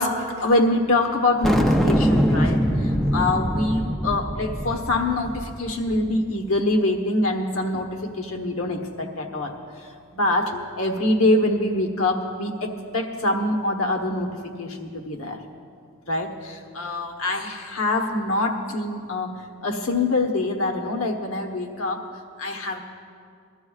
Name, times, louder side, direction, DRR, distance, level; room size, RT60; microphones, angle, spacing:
voice 1, 0.0-14.3 14.6-15.4 16.1-22.0 22.4-22.8, left 2 dB, 70° left, 4 dB, 1.2 m, -25 dB
sound 1, 1.4-6.1, equal, ahead, 0.5 m, -23 dB
21.5 x 13.5 x 2.4 m, 2.3 s
head